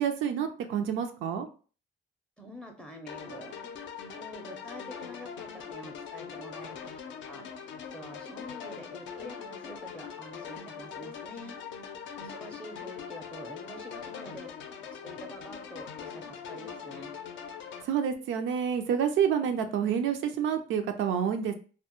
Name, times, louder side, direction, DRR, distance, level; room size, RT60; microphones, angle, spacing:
voice 1, 0.0-1.5 17.8-21.5, right 8 dB, 80° right, 7 dB, 0.4 m, -28 dB
voice 2, 2.4-3.5 4.0-6.8 7.2-7.4 7.9-11.6 12.2-14.5 14.8-17.1, equal, 5° left, 3 dB, 0.4 m, -46 dB
sound 1, 3.1-17.8, left 7 dB, 70° left, 0.4 m, -42 dB
2.1 x 2.1 x 2.9 m, 0.38 s
cardioid pair, 90°, 20 cm